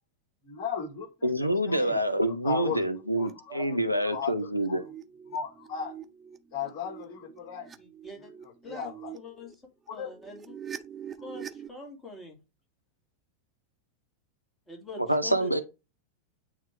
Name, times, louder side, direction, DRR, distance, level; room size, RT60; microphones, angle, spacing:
voice 1, 0.4-2.0 2.4-2.9 3.2-3.8 4.0-4.3 4.7-4.8 5.3-5.9 6.5-7.7 8.2-9.1 9.9-10.1, left 6 dB, 40° left, 3.6 m, -36 dB
voice 2, 1.2-4.9 15.1-15.6, right 1 dB, 90° right, 0.7 m, -27 dB
sound 1, 3.0-3.3 3.6-4.0 4.5-9.5 9.9-11.7, right 8 dB, 20° right, 0.5 m, -45 dB
voice 3, 7.8-8.3 8.6-9.5 9.9-10.4 11.2-12.4 14.7-15.6, left 2 dB, 15° left, 2.4 m, -44 dB
8.7 x 3.2 x 3.4 m
figure-of-eight pair, 90°, 0 cm